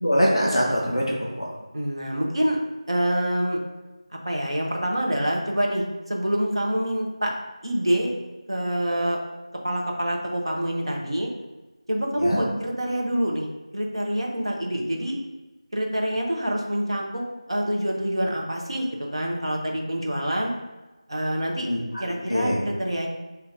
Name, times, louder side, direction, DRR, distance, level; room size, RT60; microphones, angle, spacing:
voice 1, 0.0-1.5 12.2-12.4 21.6-21.8 22.0-22.6, equal, ahead, -25 dB, 0.4 m, -23 dB
voice 2, 1.7-2.6 2.9-3.6 4.2-7.3 7.6-8.1 8.5-9.2 9.6-11.3 11.9-13.5 13.7-15.1 15.7-18.8 19.1-20.5 21.1-21.7 22.0-23.1, equal, 55° right, 0 dB, 1.0 m, -26 dB
6.9 x 2.8 x 2.6 m, 1.1 s
figure-of-eight pair, 180°, 3 cm